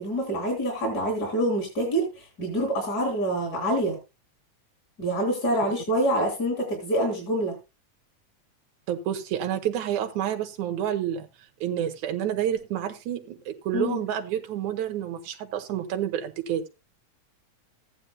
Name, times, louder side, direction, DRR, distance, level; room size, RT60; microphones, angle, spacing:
voice 1, 0.0-4.0 5.0-7.5 13.7-14.0, right 1 dB, 30° left, 3.9 m, -26 dB
voice 2, 8.9-11.3 11.6-16.7, right 10 dB, 90° right, 2.4 m, -29 dB
15.5 x 9.9 x 2.2 m
omnidirectional pair, 3.3 m